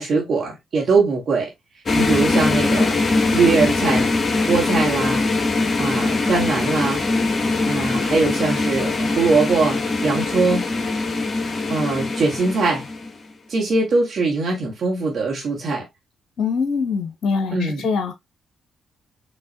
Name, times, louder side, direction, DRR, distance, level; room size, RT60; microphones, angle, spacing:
voice 1, 0.0-1.5 1.9-3.0 3.3-5.3 5.8-7.0 7.6-10.6 11.7-12.9 13.5-15.8 17.5-17.8, right 4 dB, 60° right, 1.6 m, -21 dB
sound 1, 1.9-13.2, left 3 dB, 40° left, 1.1 m, -22 dB
voice 2, 16.4-18.1, left 5 dB, 65° left, 0.8 m, -23 dB
5.3 x 2.9 x 2.8 m
hypercardioid pair, 45°, 0 cm